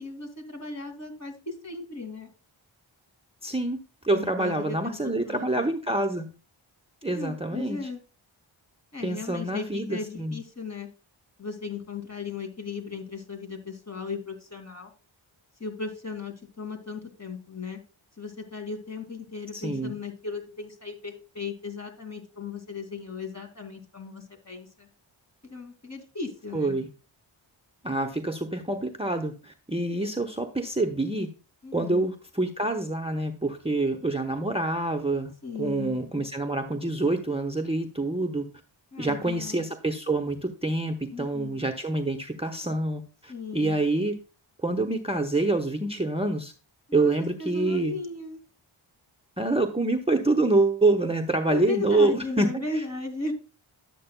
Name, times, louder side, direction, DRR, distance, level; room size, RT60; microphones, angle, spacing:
voice 1, 0.0-2.3 4.1-5.7 7.1-8.0 8.9-10.9 11.4-14.9 15.6-17.8 18.2-24.9 25.5-26.8 31.6-32.1 35.4-36.0 38.9-39.7 41.1-41.7 43.3-43.8 46.9-47.1 47.4-48.4 51.5-53.3, left 4 dB, 30° left, 3 dB, 2.5 m, -36 dB
voice 2, 3.4-3.8 4.0-6.3 7.0-7.8 9.0-10.4 19.5-19.9 26.5-26.9 27.8-31.3 31.7-35.3 35.6-38.5 39.0-44.1 44.6-46.5 46.9-48.0 49.4-52.5 52.7-52.8, right 2 dB, 10° right, 4 dB, 0.9 m, -26 dB
11.5 x 8.4 x 2.2 m, 0.34 s
cardioid pair, 40°, 49 cm